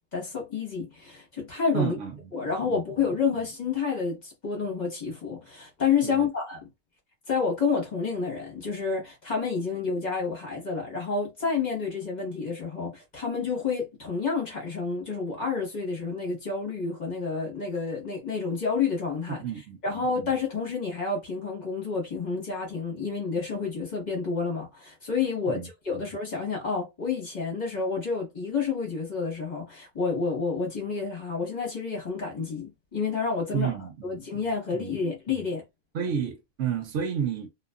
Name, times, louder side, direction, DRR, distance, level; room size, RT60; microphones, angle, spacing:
voice 1, 0.1-2.0 2.3-6.6 7.3-19.4 19.8-33.7 34.0-35.6, left 5 dB, 35° left, 1.1 m, -29 dB
voice 2, 1.7-2.1 2.4-3.1 6.0-6.3 19.3-20.3 25.5-25.7 33.5-34.4 34.7-34.9 35.9-37.5, right 7 dB, 75° right, 0.9 m, -31 dB
2.8 x 2.4 x 2.2 m
omnidirectional pair, 1.3 m